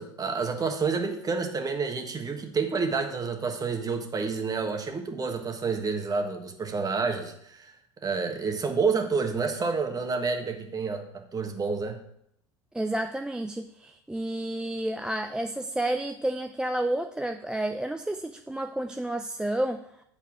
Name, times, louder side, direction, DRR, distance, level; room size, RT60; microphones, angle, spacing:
voice 1, 0.0-7.7 8.0-12.0, right 4 dB, 25° right, 4 dB, 1.4 m, -29 dB
voice 2, 12.7-19.8, right 1 dB, 5° right, 6 dB, 0.4 m, -30 dB
8.8 x 4.3 x 5.9 m, 0.72 s
hypercardioid pair, 85°, 15 cm